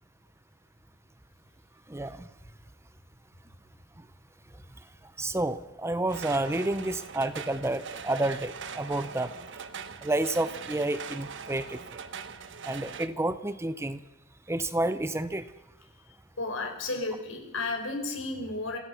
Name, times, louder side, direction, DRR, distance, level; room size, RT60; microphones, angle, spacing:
voice 1, 1.9-2.3 4.0-4.1 5.2-9.3 10.0-11.8 12.6-14.0 14.5-15.5, right 2 dB, 15° right, 13 dB, 0.8 m, -30 dB
sound 1, 6.1-13.1, right 6 dB, 65° right, 1.2 m, -41 dB
voice 2, 16.4-18.8, left 2 dB, 80° left, 3 dB, 5.1 m, -33 dB
26.0 x 17.0 x 6.0 m, 1.0 s
head